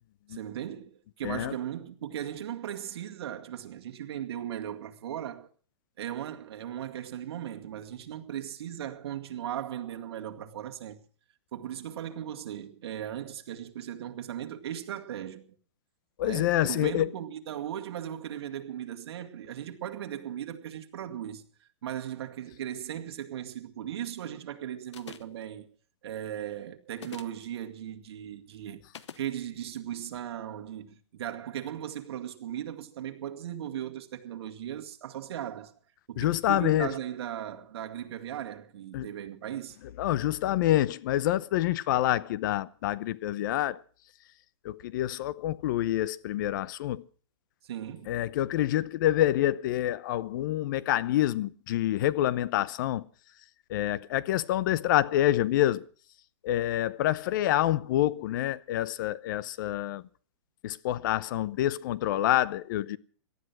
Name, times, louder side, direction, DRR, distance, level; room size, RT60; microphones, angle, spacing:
voice 1, 0.3-5.5 6.0-11.0 11.5-15.5 16.2-21.4 21.8-25.7 26.0-28.8 29.2-35.7 36.1-39.8 47.6-48.2, right 10 dB, 60° right, 2.2 m, -37 dB
voice 2, 16.2-17.1 36.2-36.9 38.9-39.1 40.0-43.8 44.6-47.0 48.1-53.0 53.7-55.9 56.4-60.0 60.6-63.0, left 13 dB, 45° left, 0.8 m, -27 dB
sound 1, 24.9-25.4 26.9-27.4 28.9-29.3, left 8 dB, 75° left, 1.3 m, -44 dB
18.0 x 12.5 x 6.1 m
hypercardioid pair, 155°, 15 cm